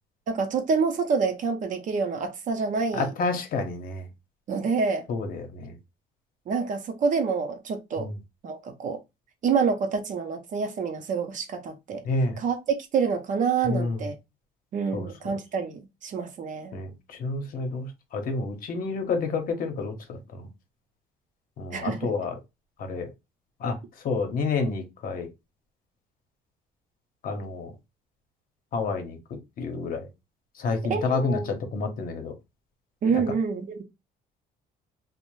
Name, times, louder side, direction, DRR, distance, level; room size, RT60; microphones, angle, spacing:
voice 1, 0.3-3.1 4.5-5.0 6.5-8.1 8.4-9.0 9.4-12.0 12.4-12.6 12.9-14.1 14.7-16.8 21.7-22.1 30.9-31.5 33.0-33.8, right 5 dB, 50° right, 0.6 m, -27 dB
voice 2, 2.9-4.0 5.1-5.7 8.0-8.1 12.0-12.4 13.7-14.0 14.9-15.1 16.7-16.9 17.2-17.9 18.1-20.4 21.6-22.3 22.8-23.1 23.6-23.8 24.0-25.3 27.2-27.7 28.7-29.2 29.6-30.1 30.6-32.3 33.1-33.2, left 3 dB, 55° left, 0.8 m, -29 dB
2.5 x 2.0 x 3.0 m
cardioid pair, 110°, 17 cm